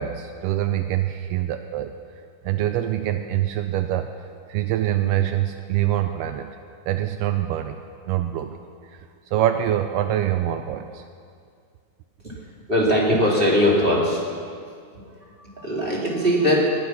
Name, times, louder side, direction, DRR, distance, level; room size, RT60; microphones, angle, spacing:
voice 1, 0.0-1.9 2.4-6.5 6.9-7.8 8.1-8.6 8.9-9.1 9.3-11.0, right 12 dB, 85° right, 7 dB, 1.4 m, -25 dB
voice 2, 12.7-14.2 14.9-15.1 15.4-16.8, equal, 20° right, -4 dB, 2.9 m, -20 dB
19.0 x 10.5 x 5.9 m, 2.2 s
omnidirectional pair, 3.3 m